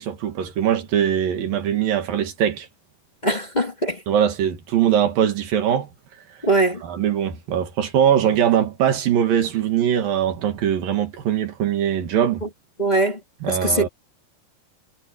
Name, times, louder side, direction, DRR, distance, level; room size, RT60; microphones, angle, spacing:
voice 1, 0.0-2.7 4.1-5.9 6.8-12.5 13.4-13.9, right 9 dB, 85° right, 3.9 m, -21 dB
voice 2, 3.2-4.0 6.4-6.8 12.4-12.5 12.8-13.2 13.5-13.9, right 2 dB, 15° left, 1.7 m, -21 dB
omnidirectional pair, 3.9 m